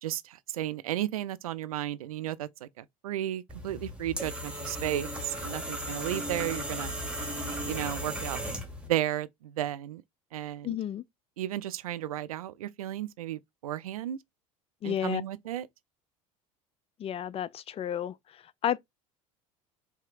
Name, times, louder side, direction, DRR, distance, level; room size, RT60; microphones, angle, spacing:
voice 1, 0.0-6.9 7.7-8.4 8.9-10.0 10.3-10.8 11.4-14.2 14.8-15.7, right 13 dB, 80° right, 0.4 m, -34 dB
sound 1, 3.5-8.9, equal, 5° right, 1.8 m, -36 dB
voice 2, 10.6-11.0 14.8-15.2 17.0-18.1 18.6-18.8, left 10 dB, 35° left, 0.4 m, -31 dB
4.6 x 2.8 x 2.4 m
hypercardioid pair, 70°, 18 cm